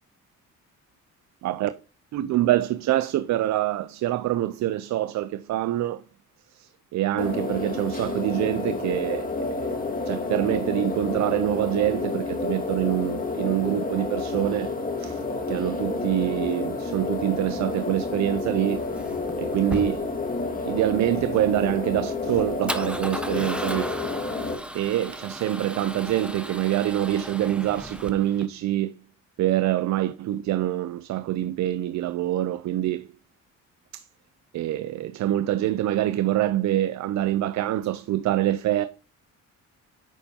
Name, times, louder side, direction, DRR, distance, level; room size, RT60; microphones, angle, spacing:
voice 1, 2.1-6.0 6.5-9.8 10.1-15.2 15.5-18.8 19.4-20.1 20.6-23.9 24.7-28.9 29.4-33.1 33.9-34.0 34.5-38.9, right 13 dB, 65° right, 0.6 m, -25 dB
sound 1, 7.2-24.5, left 3 dB, 30° left, 2.0 m, -30 dB
Male speech man speaking / Car / Engine starting, 17.4-28.5, right 1 dB, 5° right, 1.0 m, -37 dB
10.0 x 7.0 x 2.8 m
cardioid pair, 125°, 30 cm